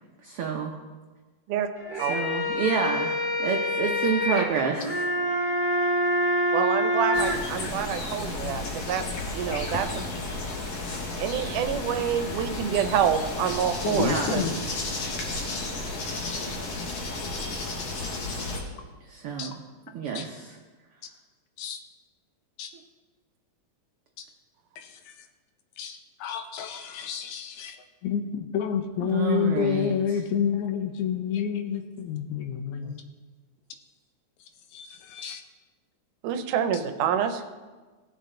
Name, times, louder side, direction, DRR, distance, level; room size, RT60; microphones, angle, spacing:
voice 1, 0.2-0.7 2.1-5.1 13.8-14.4 19.0-19.6 19.9-20.6 29.0-30.2, right 6 dB, 70° right, 1 dB, 1.3 m, -29 dB
sound 1, 1.8-7.3, equal, 20° left, 1.3 m, -26 dB
voice 2, 6.5-9.1 9.3-10.1 11.2-14.5 32.8-33.0 36.2-37.4, right 8 dB, 90° right, 8 dB, 2.3 m, -27 dB
sound 2, 7.1-18.6, left 2 dB, 60° left, 2.4 m, -33 dB
voice 3, 13.8-14.6 15.0-15.2 19.4-19.5 20.2-20.3 21.6-21.8 22.6-22.7 24.2-24.3 24.8-25.1 25.8-27.8 28.0-33.0 34.7-35.4, left 8 dB, 75° left, 6 dB, 2.1 m, -29 dB
17.5 x 6.9 x 3.8 m, 1.3 s
omnidirectional pair, 3.6 m